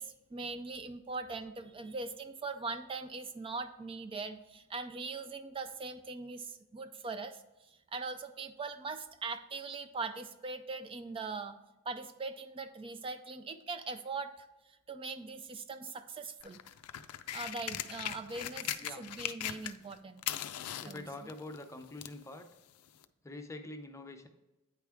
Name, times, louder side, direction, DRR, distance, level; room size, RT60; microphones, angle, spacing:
voice 1, 0.0-7.4 7.7-11.5 11.9-14.5 14.9-16.6 17.3-20.3 20.8-21.0, right 4 dB, 25° right, 10 dB, 0.3 m, -41 dB
sound 1, 16.4-19.9 20.2-22.2 23.0-23.1, left 12 dB, 85° left, 0.4 m, -39 dB
voice 2, 20.8-22.4 23.2-24.3, left 2 dB, 15° left, 6 dB, 0.6 m, -45 dB
8.8 x 4.7 x 3.4 m, 1.0 s
head